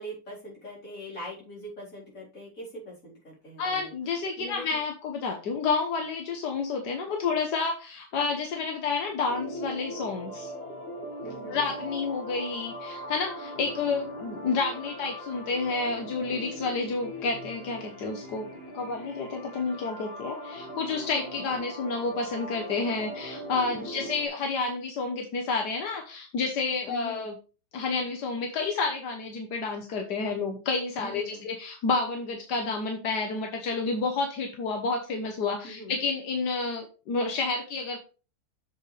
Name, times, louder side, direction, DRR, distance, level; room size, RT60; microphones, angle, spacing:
voice 1, 0.0-3.9 4.4-4.8 11.2-11.7 21.4-21.5 23.8-24.1 26.9-27.2 31.0-31.4 35.6-35.9, equal, 55° left, -5 dB, 4.6 m, -42 dB
voice 2, 3.6-10.5 11.5-18.5 18.7-27.4 27.7-38.0, left 4 dB, 85° left, 2 dB, 1.7 m, -30 dB
sound 1, 9.3-24.3, equal, 35° left, 2.5 m, -40 dB
7.7 x 7.5 x 3.3 m, 0.34 s
omnidirectional pair, 1.7 m